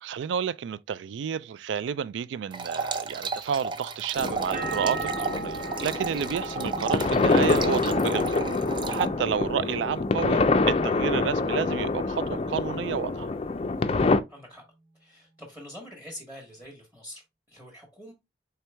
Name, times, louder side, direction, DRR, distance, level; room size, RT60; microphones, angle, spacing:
voice 1, 0.0-8.6 8.9-13.3, right 7 dB, 85° right, 0.3 m, -30 dB
sound 1, 2.5-9.1, right 4 dB, 25° right, 0.5 m, -34 dB
sound 2, 4.2-14.2, left 3 dB, 35° left, 0.4 m, -26 dB
sound 3, 4.5-10.2 10.5-11.2, right 5 dB, 45° right, 0.9 m, -40 dB
voice 2, 14.3-14.6 15.0-18.1, equal, 10° right, 1.0 m, -45 dB
4.5 x 3.5 x 3.3 m
head